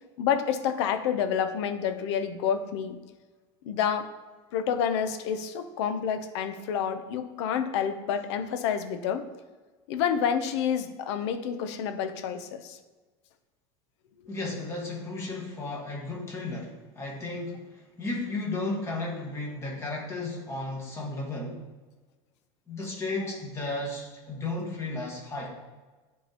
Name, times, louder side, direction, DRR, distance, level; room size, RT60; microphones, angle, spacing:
voice 1, 0.2-3.0 3.6-4.1 4.5-9.3 9.9-12.8, left 8 dB, 80° left, 10 dB, 0.7 m, -28 dB
voice 2, 14.3-21.6 22.7-25.6, left 2 dB, 20° left, -3 dB, 1.5 m, -34 dB
10.0 x 3.8 x 2.9 m, 1.3 s
cardioid pair, 160°, 14 cm